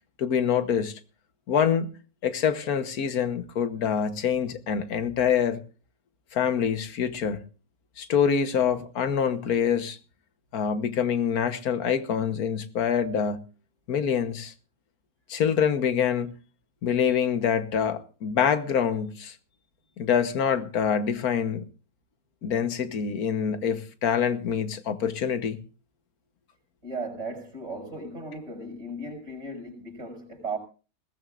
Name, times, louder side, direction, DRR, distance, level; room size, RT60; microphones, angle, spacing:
voice 1, 0.2-0.9 1.5-1.9 2.2-5.6 6.3-7.4 8.0-10.0 10.5-13.4 13.9-14.5 15.3-16.3 16.8-19.3 20.0-21.6 22.4-25.6, left 7 dB, 90° left, 1.6 m, -25 dB
voice 2, 26.8-30.6, right 2 dB, 55° right, 5.7 m, -36 dB
20.5 x 17.0 x 2.5 m
omnidirectional pair, 1.5 m